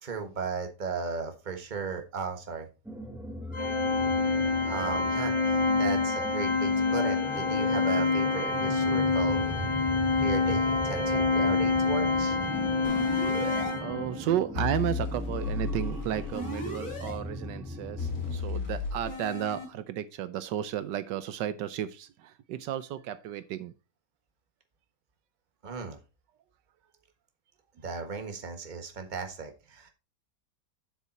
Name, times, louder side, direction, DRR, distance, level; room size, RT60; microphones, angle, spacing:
voice 1, 0.0-2.7 4.7-9.5 10.2-12.4 25.6-26.0 27.8-29.9, right 5 dB, 30° right, 1.4 m, -36 dB
sound 1, 2.8-18.3, equal, ahead, 0.8 m, -39 dB
Organ, 3.5-14.3, left 4 dB, 35° left, 0.4 m, -27 dB
sound 2, 12.8-13.7 14.6-17.1 18.0-19.7, left 3 dB, 55° left, 4.5 m, -34 dB
voice 2, 13.7-23.7, right 11 dB, 80° right, 1.3 m, -33 dB
7.9 x 7.2 x 4.2 m
omnidirectional pair, 1.9 m